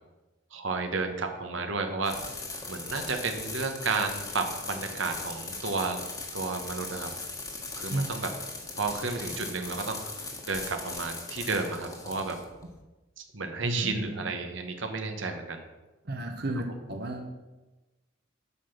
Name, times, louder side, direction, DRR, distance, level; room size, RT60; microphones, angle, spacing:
voice 1, 0.5-2.2 2.7-6.0 6.3-7.1 7.7-8.3 8.7-10.0 10.5-12.4 13.2-15.6, right 4 dB, 75° right, 5 dB, 1.2 m, -32 dB
sound 1, 2.0-12.8, left 3 dB, 20° left, 1.4 m, -39 dB
voice 2, 13.6-14.2 16.0-17.3, right 1 dB, 55° right, 3 dB, 1.1 m, -32 dB
8.3 x 6.0 x 7.2 m, 1.1 s
head